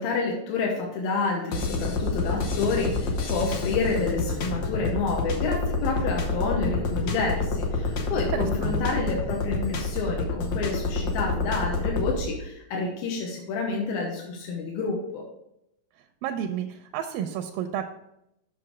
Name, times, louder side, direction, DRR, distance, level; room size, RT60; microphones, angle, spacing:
voice 1, 0.0-15.2, left 4 dB, 85° left, -1 dB, 2.8 m, -29 dB
sound 1, 1.5-12.2, left 3 dB, 70° left, 1.7 m, -28 dB
voice 2, 8.1-8.8 16.2-17.8, right 9 dB, 85° right, 5 dB, 2.3 m, -31 dB
7.6 x 6.2 x 4.7 m, 0.82 s
omnidirectional pair, 4.1 m